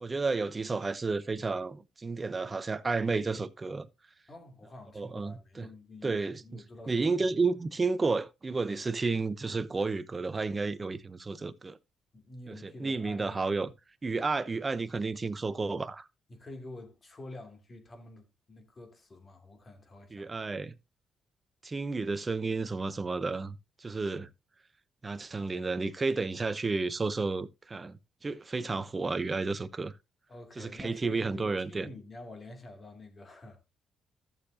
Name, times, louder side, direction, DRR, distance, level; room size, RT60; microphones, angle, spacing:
voice 1, 0.0-3.9 5.0-5.7 6.0-6.4 6.9-11.8 12.5-13.7 14.0-16.1 20.1-20.7 21.6-24.3 25.0-29.9 30.6-31.9, right 3 dB, 25° right, 0.8 m, -32 dB
voice 2, 4.3-7.3 12.1-13.6 16.3-20.3 30.3-33.7, left 2 dB, 35° left, 2.7 m, -48 dB
14.5 x 6.8 x 2.8 m
cardioid pair, 90°, 0 cm